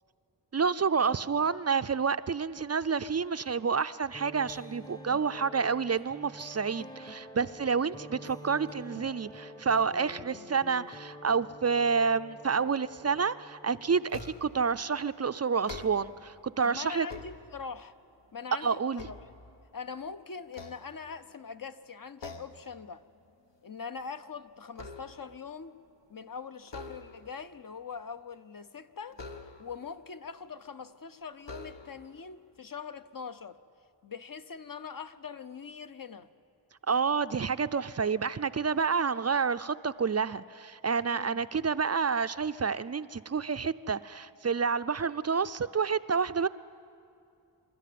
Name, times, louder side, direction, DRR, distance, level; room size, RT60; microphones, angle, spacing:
voice 1, 0.5-17.1 18.6-19.0 36.9-46.5, right 5 dB, 35° right, 13 dB, 0.4 m, -29 dB
sound 1, 4.1-14.7, equal, 10° left, 0.7 m, -48 dB
sound 2, 14.1-14.7 15.5-16.3 16.8-17.9 18.4-19.9 20.5-21.5 22.2-22.7 23.1-23.3 23.7-25.4 26.6-27.5 29.1-29.9 30.7-30.8 31.4-32.2, left 3 dB, 65° left, 1.4 m, -46 dB
voice 2, 16.6-17.9 18.3-19.2 19.7-23.0 23.6-25.8 26.1-29.2 29.6-33.6 34.0-36.3 41.0-41.4, left 5 dB, 45° left, 11 dB, 0.8 m, -42 dB
25.5 x 13.5 x 9.3 m, 2.6 s
wide cardioid pair, 75°, 46 cm